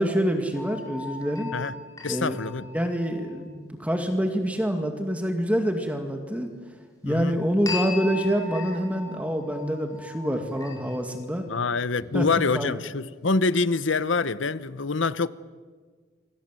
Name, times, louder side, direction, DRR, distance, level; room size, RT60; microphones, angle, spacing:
voice 1, 0.0-1.5 2.1-2.4 2.7-6.5 7.0-11.5 12.1-12.3 12.5-12.8, equal, 5° right, 2.2 m, -26 dB
sound 1, 0.5-3.4 7.7-11.2, left 4 dB, 20° left, 5.1 m, -38 dB
voice 2, 2.0-2.7 7.0-7.4 11.5-15.3, left 4 dB, 90° left, 1.0 m, -25 dB
29.5 x 25.5 x 7.7 m
head